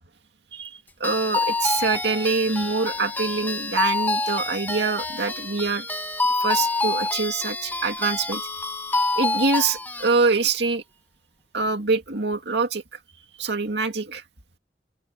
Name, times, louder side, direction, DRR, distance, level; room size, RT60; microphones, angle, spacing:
voice 1, 0.5-5.9 6.4-8.4 9.2-10.8 11.5-13.0 13.4-14.2, right 4 dB, 65° right, 2.4 m, -25 dB
sound 1, 1.0-10.1, left 3 dB, 10° left, 1.9 m, -27 dB
head